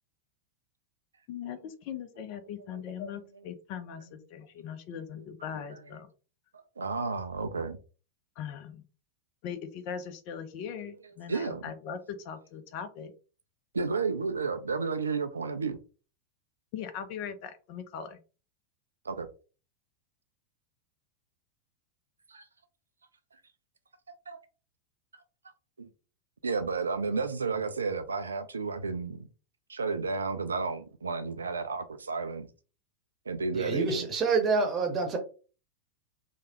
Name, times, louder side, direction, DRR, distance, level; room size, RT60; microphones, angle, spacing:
voice 1, 1.3-6.1 8.4-8.8 9.4-13.1 16.7-18.2, left 7 dB, 45° left, 0.5 m, -40 dB
voice 2, 6.5-7.8 11.3-11.7 13.7-15.8 19.1-19.3 22.3-22.4 24.3-24.4 25.8-25.9 26.4-29.3 29.7-32.5 33.3-34.1, right 4 dB, 75° right, 0.3 m, -32 dB
voice 3, 33.5-35.2, right 4 dB, 25° right, 0.9 m, -27 dB
3.1 x 2.1 x 2.9 m
figure-of-eight pair, 90°, 0 cm